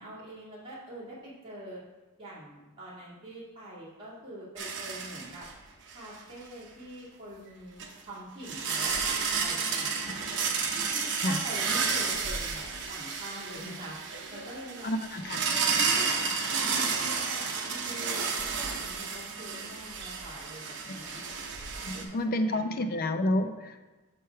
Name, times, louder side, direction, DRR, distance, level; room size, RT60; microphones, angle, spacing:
voice 1, 0.0-1.8 2.2-5.5 5.9-7.8 8.1-10.1 10.9-14.9 15.4-16.2 16.5-21.1 21.9-22.1 22.5-23.0, right 1 dB, 25° right, -9 dB, 1.9 m, -44 dB
sound 1, 4.6-5.6 5.9-6.1 7.8-7.9 8.4-22.0, right 5 dB, 55° right, 0.8 m, -31 dB
voice 2, 14.8-15.4 20.9-21.2 21.8-23.8, left 1 dB, 45° left, 8 dB, 0.5 m, -30 dB
6.1 x 4.7 x 4.5 m, 1.2 s
head